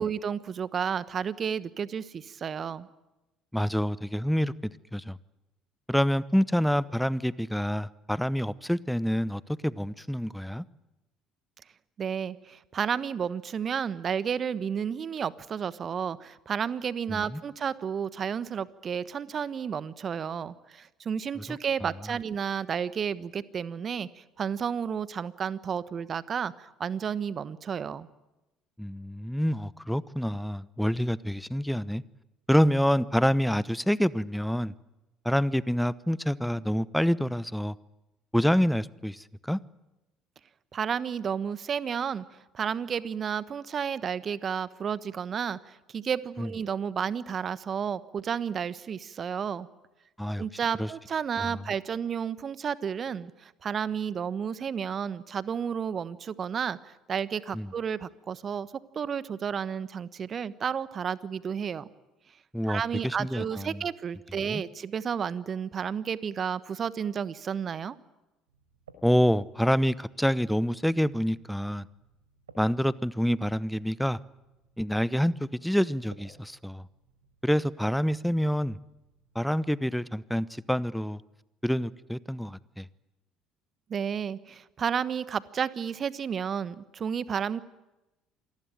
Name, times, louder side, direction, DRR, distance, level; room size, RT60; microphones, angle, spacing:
voice 1, 0.0-2.9 12.0-28.1 40.7-42.2 42.5-49.7 50.4-61.9 62.7-68.0 83.9-87.6, right 7 dB, 40° right, 17 dB, 1.2 m, -32 dB
voice 2, 3.5-5.2 5.9-10.6 17.1-17.4 21.5-21.6 28.8-32.0 32.5-34.7 35.2-37.8 38.3-39.6 46.4-46.5 50.2-50.4 50.8-50.9 51.4-51.6 57.5-57.7 62.5-63.8 64.5-64.6 69.0-71.8 72.6-74.2 74.8-76.8 77.4-78.8 79.3-81.2 81.6-82.9, equal, ahead, 20 dB, 0.9 m, -27 dB
sound 1, 68.5-79.6, right 3 dB, 85° right, 5.4 m, -60 dB
27.0 x 19.5 x 9.1 m, 0.98 s
figure-of-eight pair, 60°, 0 cm